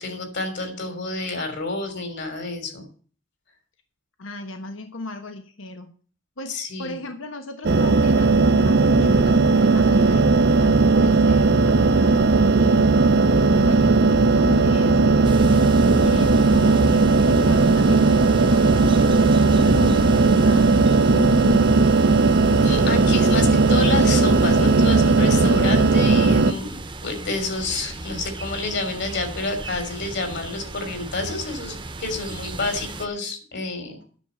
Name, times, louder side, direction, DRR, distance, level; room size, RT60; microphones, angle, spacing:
voice 1, 0.0-2.8 6.5-7.0 22.6-34.0, left 3 dB, 60° left, 7 dB, 3.4 m, -29 dB
voice 2, 4.2-5.9 6.4-6.5 6.8-12.8 13.3-20.7 21.1-21.7, left 2 dB, 90° left, 7 dB, 1.3 m, -37 dB
sound 1, 7.6-26.5, right 3 dB, 55° right, 0.7 m, -17 dB
sound 2, 15.2-33.1, right 2 dB, 25° right, 1.0 m, -36 dB
9.9 x 7.3 x 7.0 m, 0.42 s
head